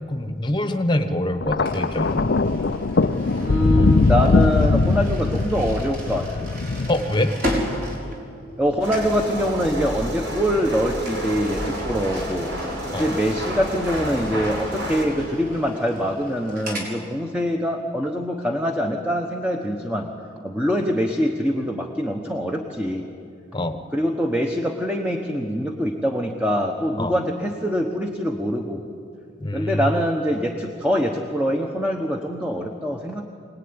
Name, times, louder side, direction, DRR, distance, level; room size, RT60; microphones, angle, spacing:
voice 1, 0.1-2.2 6.9-7.3 12.9-13.1 23.5-23.8 27.0-27.1 29.4-29.8, left 1 dB, 25° left, 8 dB, 1.2 m, -24 dB
Thunder, 1.4-7.8 8.7-9.0, left 3 dB, 55° left, 0.5 m, -21 dB
sound 1, 1.7-8.6 8.9-9.2 11.0-16.9, equal, 50° right, 5.1 m, -35 dB
voice 2, 3.3-6.5 8.6-12.5 13.0-20.1 20.4-23.1 23.9-28.8 29.5-33.2, equal, 5° right, 2 dB, 1.2 m, -24 dB
sound 2, 8.8-15.0, equal, 70° right, 5.3 m, -30 dB
25.0 x 18.5 x 9.8 m, 2.6 s
head